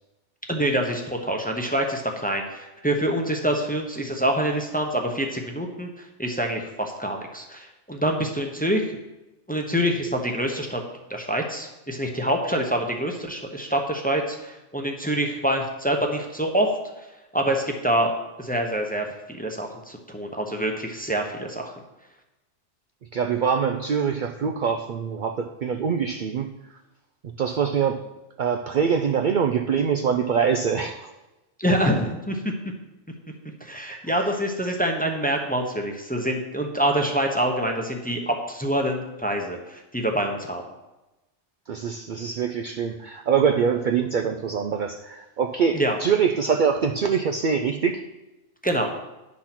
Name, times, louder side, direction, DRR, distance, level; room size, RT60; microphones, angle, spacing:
voice 1, 0.5-5.9 6.2-9.0 9.5-10.8 11.1-16.7 17.3-18.1 18.4-21.7 31.6-32.5 33.6-40.6 45.7-46.0 48.6-48.9, right 1 dB, 10° left, 2 dB, 0.8 m, -26 dB
voice 2, 23.1-26.5 27.4-28.0 28.4-31.1 34.1-34.3 41.7-48.0, right 6 dB, 60° right, 6 dB, 0.5 m, -24 dB
10.0 x 4.2 x 5.9 m, 1.0 s
omnidirectional pair, 1.2 m